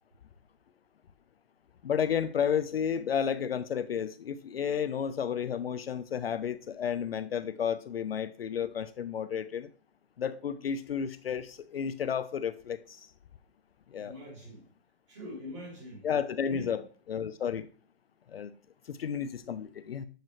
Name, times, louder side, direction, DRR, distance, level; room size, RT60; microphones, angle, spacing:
voice 1, 1.8-9.7 10.2-13.1 13.9-14.1 16.0-16.8 17.1-17.7 18.3-18.5 18.9-20.1, left 8 dB, 60° left, 0.5 m, -32 dB
voice 2, 13.9-14.7 15.1-16.1 16.4-16.8, equal, 25° right, 2.5 m, -44 dB
7.5 x 5.0 x 3.1 m
hypercardioid pair, 180°, 34 cm